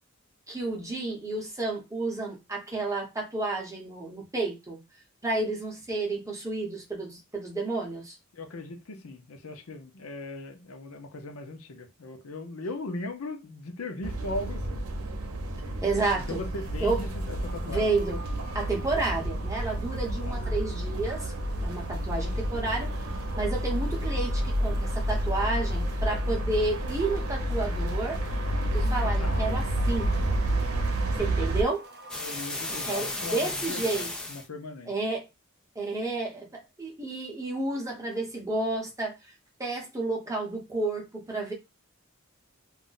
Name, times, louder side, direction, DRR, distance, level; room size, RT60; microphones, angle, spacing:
voice 1, 0.5-4.8 5.2-8.1 15.8-16.4 16.8-17.0 17.6-18.2 18.5-22.9 23.4-28.2 28.7-30.1 31.2-31.8 32.7-34.1 34.9-35.3 35.8-39.3 39.6-41.5, right 3 dB, 15° right, 0.8 m, -31 dB
voice 2, 8.3-14.9 16.1-17.9 20.2-20.6 29.2-29.8 32.1-34.9, left 2 dB, 85° left, 0.7 m, -38 dB
sound 1, 14.0-31.6, right 1 dB, 90° right, 0.7 m, -30 dB
sound 2, 17.3-33.4, right 1 dB, 50° right, 0.5 m, -45 dB
sound 3, 32.1-34.5, left 2 dB, 5° left, 0.4 m, -34 dB
2.4 x 2.1 x 3.8 m
head